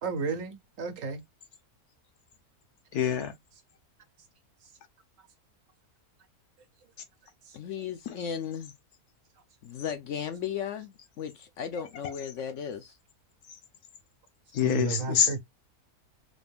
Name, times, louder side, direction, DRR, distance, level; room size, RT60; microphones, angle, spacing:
voice 1, 0.0-1.2 7.5-7.6 14.6-15.4, right 5 dB, 65° right, 1.2 m, -33 dB
voice 2, 2.9-3.3 8.1-8.2 13.5-13.6 14.5-15.3, left 8 dB, 85° left, 1.4 m, -26 dB
voice 3, 7.5-8.7 9.6-13.0, left 8 dB, 65° left, 0.8 m, -36 dB
4.2 x 2.5 x 3.4 m
omnidirectional pair, 1.6 m